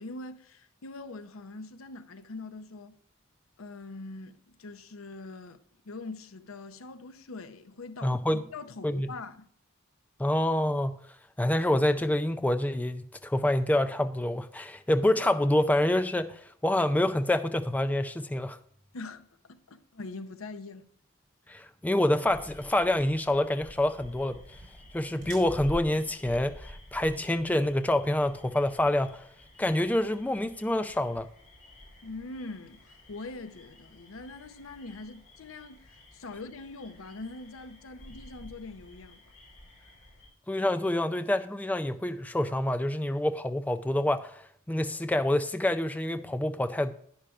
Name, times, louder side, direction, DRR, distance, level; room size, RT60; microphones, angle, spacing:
voice 1, 0.0-3.0 3.6-5.6 5.8-9.5 18.9-20.9 32.0-39.2, left 3 dB, 75° left, 0.7 m, -43 dB
voice 2, 8.0-8.4 8.8-9.1 10.2-11.0 11.4-18.6 21.5-24.4 24.9-29.2 29.6-31.3 40.5-46.9, left 1 dB, 5° left, 0.4 m, -27 dB
sound 1, 22.2-40.3, left 1 dB, 40° left, 3.6 m, -52 dB
sound 2, 23.6-29.7, equal, 40° right, 4.2 m, -46 dB
11.5 x 9.9 x 2.4 m
head